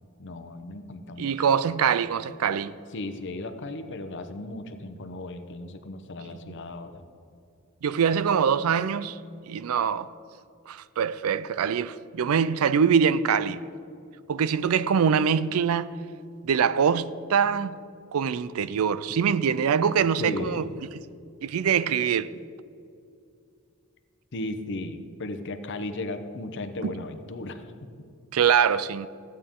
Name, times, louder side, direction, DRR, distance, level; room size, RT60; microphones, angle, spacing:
voice 1, 0.2-1.4 2.9-7.1 20.0-20.8 24.3-27.6, left 2 dB, 60° left, 0.8 m, -36 dB
voice 2, 1.2-2.8 7.8-9.2 9.5-10.1 10.7-13.6 14.3-15.9 16.4-17.8 18.1-20.7 21.4-22.4 26.8-26.9 28.3-29.1, right 7 dB, 80° right, 0.4 m, -24 dB
15.0 x 8.7 x 3.7 m
head